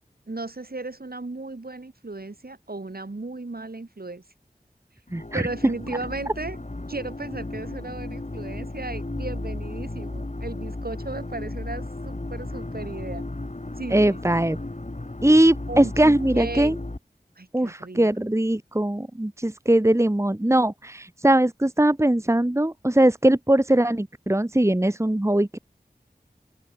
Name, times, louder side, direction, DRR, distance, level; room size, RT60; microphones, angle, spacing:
voice 1, 0.3-4.2 5.3-6.6 6.9-13.2 13.8-14.4 15.7-16.8 17.4-18.1, right 2 dB, 65° right, 4.2 m, -35 dB
sound 1, 5.1-17.0, left 2 dB, 45° left, 4.8 m, -34 dB
voice 2, 5.1-5.4 13.9-14.6 15.2-16.7 17.5-25.6, right 1 dB, 15° right, 1.3 m, -20 dB
open air
wide cardioid pair, 40°, 17 cm